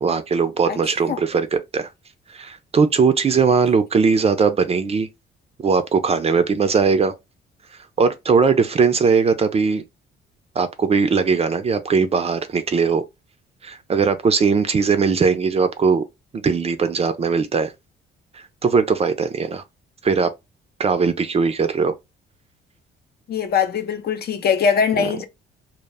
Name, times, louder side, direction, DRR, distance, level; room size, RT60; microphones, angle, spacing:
voice 1, 0.0-1.9 2.3-5.1 5.6-7.1 8.0-9.8 10.6-13.0 13.6-16.0 16.3-17.7 18.3-19.6 20.0-20.3 20.8-21.9, right 5 dB, 30° right, 0.4 m, -19 dB
voice 2, 23.3-25.2, left 6 dB, 55° left, 0.5 m, -21 dB
2.1 x 2.0 x 3.3 m
cardioid pair, 90°, 20 cm